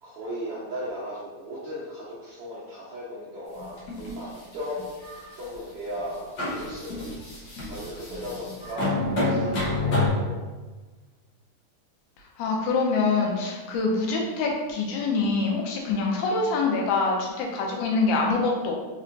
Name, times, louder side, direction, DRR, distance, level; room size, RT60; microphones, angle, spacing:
voice 1, 0.0-4.9 5.4-7.0 7.4-10.4, equal, 75° right, -9 dB, 1.3 m, -37 dB
sound 1, 3.6-4.2 4.8-5.5 6.0-6.1 6.4-10.1, left 2 dB, 65° left, 1.1 m, -28 dB
voice 2, 12.4-18.7, left 3 dB, 80° left, 0 dB, 2.1 m, -25 dB
4.4 x 4.2 x 2.5 m, 1.2 s
omnidirectional pair, 3.5 m